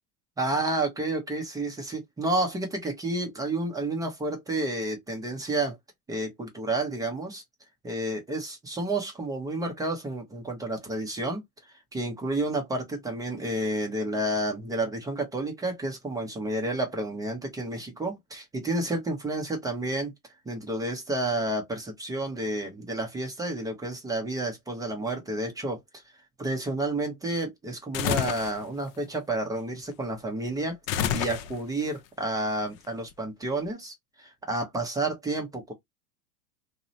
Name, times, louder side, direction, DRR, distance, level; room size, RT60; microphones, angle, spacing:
voice 1, 0.4-5.8 6.1-7.4 7.8-11.4 11.9-20.1 20.5-26.0 26.4-30.8 31.1-35.7, right 2 dB, 10° right, 0.4 m, -30 dB
sound 1, 27.9-28.6 30.9-31.8, left 10 dB, 65° left, 0.5 m, -28 dB
2.8 x 2.0 x 2.5 m
hypercardioid pair, 115°, 46 cm